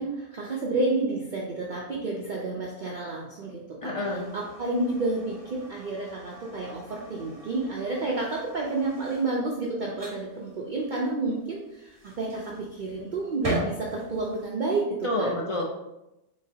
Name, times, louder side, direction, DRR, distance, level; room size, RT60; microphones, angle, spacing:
voice 1, 0.0-15.3, right 2 dB, 55° right, -3 dB, 0.6 m, -30 dB
voice 2, 3.8-4.3 15.0-15.6, left 2 dB, 45° left, -2 dB, 0.4 m, -28 dB
sound 1, 4.1-14.5, right 1 dB, 20° right, 1.2 m, -41 dB
3.9 x 3.7 x 2.7 m, 0.92 s
omnidirectional pair, 1.3 m